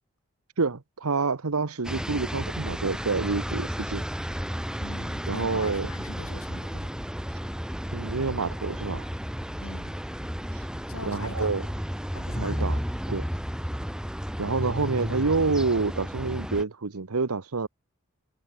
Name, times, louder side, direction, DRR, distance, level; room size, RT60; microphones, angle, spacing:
voice 1, 0.6-4.0 5.3-5.9 7.9-9.1 11.1-11.6 12.4-12.8 13.1-13.2 14.4-17.7, right 4 dB, 80° right, 1.0 m, -27 dB
sound 1, 1.8-16.6, equal, 5° right, 1.5 m, -33 dB
voice 2, 4.8-6.9 9.6-9.9 10.9-11.5 12.1-12.8, left 2 dB, 75° left, 4.0 m, -42 dB
head